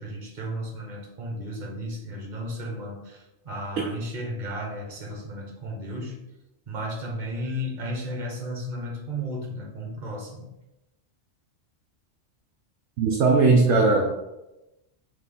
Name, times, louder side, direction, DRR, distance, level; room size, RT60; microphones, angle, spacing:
voice 1, 0.0-6.2 6.7-10.5, equal, 40° right, -1 dB, 1.1 m, -34 dB
voice 2, 13.0-14.2, right 3 dB, 70° right, 0 dB, 0.8 m, -19 dB
4.1 x 3.3 x 3.5 m, 0.95 s
omnidirectional pair, 1.3 m